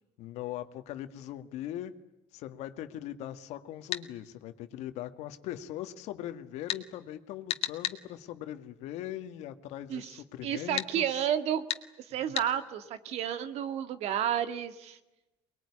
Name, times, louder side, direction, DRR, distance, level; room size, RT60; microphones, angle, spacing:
voice 1, 0.2-1.9 2.3-11.2 12.1-12.3, left 12 dB, 75° left, 9 dB, 1.9 m, -40 dB
sound 1, 3.9-4.1 6.7-6.8 7.5-8.0 10.8-10.9 11.7-11.8 12.3-12.5, left 11 dB, 60° left, 1.9 m, -32 dB
voice 2, 9.9-11.6 12.0-15.0, right 10 dB, 70° right, 11 dB, 2.2 m, -31 dB
24.0 x 21.0 x 9.9 m, 0.99 s
cardioid pair, 110°, 11 cm